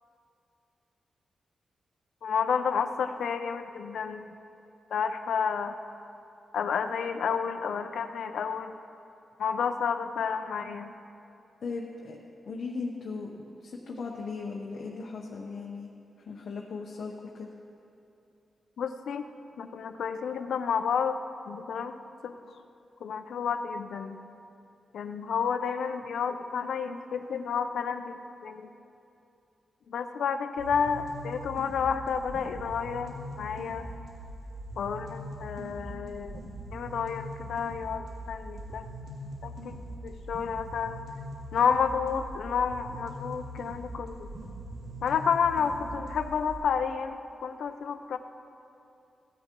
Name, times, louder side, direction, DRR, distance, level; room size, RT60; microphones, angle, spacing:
voice 1, 2.2-4.3 4.9-5.8 6.5-8.7 9.4-10.9 18.8-19.3 19.6-22.0 22.2-22.4 23.0-24.2 24.9-28.7 29.9-33.9 34.8-36.4 36.7-38.9 39.4-41.0 41.5-44.3 45.0-48.2, left 6 dB, 85° left, 8 dB, 0.5 m, -30 dB
voice 2, 11.6-12.2 12.5-15.9 16.3-17.5, left 4 dB, 55° left, -1 dB, 0.8 m, -37 dB
sound 1, 30.6-46.6, right 1 dB, 85° right, 2.7 m, -42 dB
16.0 x 10.0 x 3.0 m, 2.7 s
wide cardioid pair, 165°, 0 cm